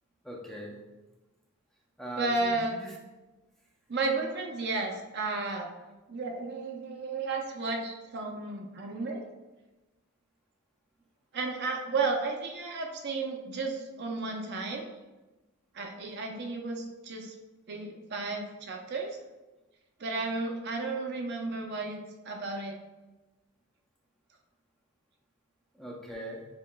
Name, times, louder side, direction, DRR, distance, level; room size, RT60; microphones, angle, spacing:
voice 1, 0.2-0.8 2.0-2.9 25.7-26.5, right 1 dB, ahead, -3 dB, 0.5 m, -41 dB
voice 2, 2.2-2.7 3.9-5.7 6.1-9.2 11.3-14.9 15.7-17.3 17.7-19.2 20.0-22.0 22.2-22.8, right 3 dB, 50° right, 2 dB, 0.5 m, -33 dB
6.9 x 2.9 x 2.2 m, 1.1 s
head